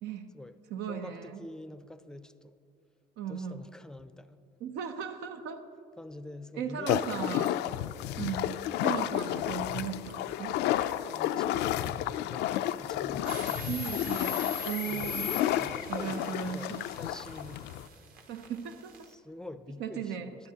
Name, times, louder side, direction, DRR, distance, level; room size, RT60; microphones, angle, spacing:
voice 1, 0.0-0.4 0.7-1.4 3.2-3.6 4.6-5.6 6.5-7.6 8.2-10.6 13.3-15.5 15.9-16.9 18.3-19.1 19.8-20.4, right 7 dB, 85° right, 7 dB, 0.7 m, -37 dB
voice 2, 0.9-2.6 3.3-4.4 6.0-6.9 9.3-9.6 11.1-13.8 14.9-17.9 19.1-20.1, left 1 dB, 5° left, 11 dB, 0.5 m, -46 dB
sound 1, 6.9-17.9, left 12 dB, 80° left, 0.4 m, -31 dB
sound 2, 13.3-19.1, left 4 dB, 60° right, 1.3 m, -41 dB
20.0 x 9.8 x 2.8 m, 2.5 s
cardioid pair, 110°, 17 cm